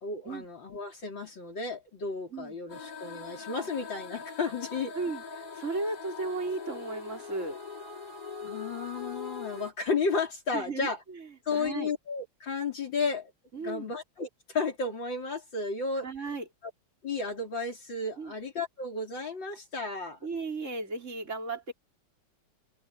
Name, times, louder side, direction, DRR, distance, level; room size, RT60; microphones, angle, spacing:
voice 1, 0.0-4.9 8.4-11.0 11.5-13.3 13.6-16.1 17.0-20.2, left 4 dB, 60° left, 4.4 m, -33 dB
sound 1, 2.7-9.7, left 5 dB, 40° left, 6.4 m, -42 dB
voice 2, 4.9-7.6 10.5-11.9 13.5-13.9 16.0-16.5 18.2-18.3 20.2-21.7, right 3 dB, 35° right, 4.8 m, -35 dB
omnidirectional pair, 2.3 m